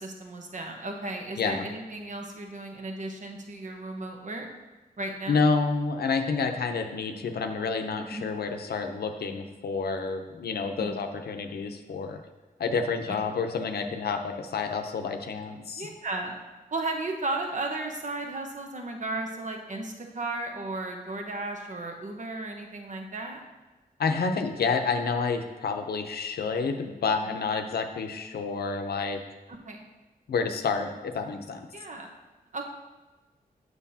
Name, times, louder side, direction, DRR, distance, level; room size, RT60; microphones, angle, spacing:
voice 1, 0.0-4.5 5.0-5.4 8.1-8.3 10.8-11.0 13.1-13.2 15.7-16.3 16.7-23.4 27.3-27.5 29.5-29.8 31.7-32.1 32.5-32.6, right 2 dB, 50° right, 3 dB, 1.0 m, -35 dB
voice 2, 5.3-12.2 12.6-15.9 24.0-29.2 30.3-31.7, left 4 dB, 80° left, 6 dB, 0.6 m, -29 dB
7.1 x 6.3 x 2.8 m, 1.2 s
cardioid pair, 60°, 16 cm